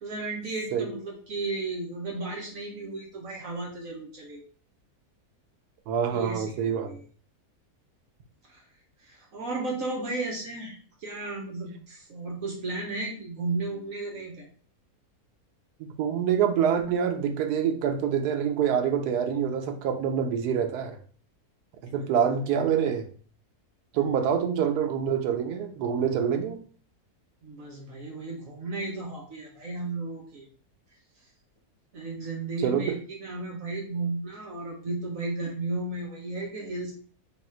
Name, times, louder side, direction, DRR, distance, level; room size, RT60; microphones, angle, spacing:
voice 1, 0.0-4.4 6.1-7.0 8.5-8.6 9.0-14.4 22.0-22.1 27.4-30.5 31.9-36.9, right 3 dB, 60° right, -1 dB, 1.2 m, -34 dB
voice 2, 5.9-6.9 16.0-21.0 21.9-23.1 23.9-26.6 32.6-33.0, right 8 dB, 85° right, 5 dB, 1.2 m, -26 dB
3.9 x 2.4 x 4.3 m, 0.43 s
omnidirectional pair, 1.6 m